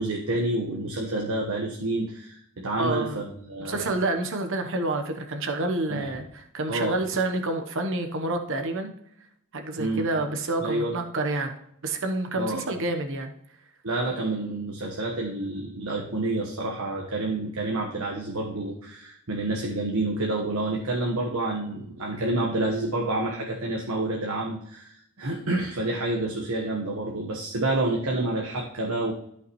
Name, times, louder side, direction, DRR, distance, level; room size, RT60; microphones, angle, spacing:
voice 1, 0.0-3.9 5.9-6.1 6.7-6.9 9.8-10.1 10.6-10.9 12.4-12.6 13.8-29.1, right 2 dB, 75° right, -1 dB, 1.3 m, -28 dB
voice 2, 2.8-3.2 3.6-8.9 9.5-11.6 11.8-13.3, right 2 dB, 60° right, 5 dB, 1.0 m, -28 dB
13.0 x 5.8 x 3.1 m, 0.73 s
head